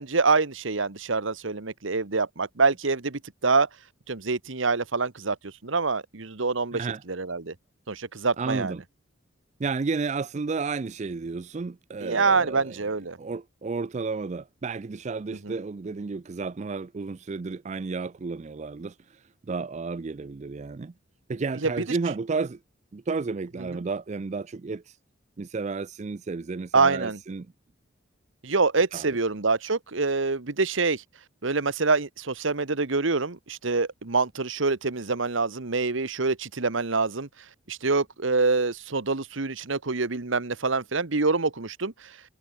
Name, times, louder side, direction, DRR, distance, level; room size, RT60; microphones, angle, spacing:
voice 1, 0.0-3.7 4.1-6.8 7.1-7.5 7.9-8.7 12.0-13.2 15.4-15.6 21.6-22.0 23.7-23.8 26.7-27.2 28.4-31.0 31.4-37.3 37.7-42.2, right 4 dB, 70° right, 1.3 m, -26 dB
voice 2, 6.7-7.0 8.4-8.8 9.6-12.8 13.2-20.9 21.3-22.6 22.9-25.0 25.4-27.5 28.9-29.2, right 4 dB, 35° right, 0.4 m, -32 dB
head